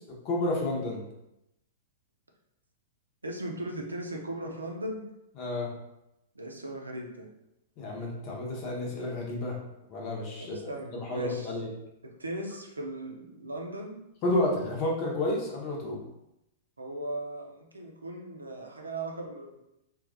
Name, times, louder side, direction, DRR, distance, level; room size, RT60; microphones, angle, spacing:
voice 1, 0.2-1.0 5.4-5.7 7.8-9.6 9.9-11.7 14.2-16.0, left 1 dB, 40° left, -1 dB, 0.9 m, -31 dB
voice 2, 3.2-5.0 6.3-7.3 10.4-11.6 12.0-14.0 16.8-19.6, right 1 dB, 85° right, 1 dB, 0.5 m, -38 dB
3.2 x 2.4 x 2.5 m, 0.86 s
figure-of-eight pair, 105°, 0 cm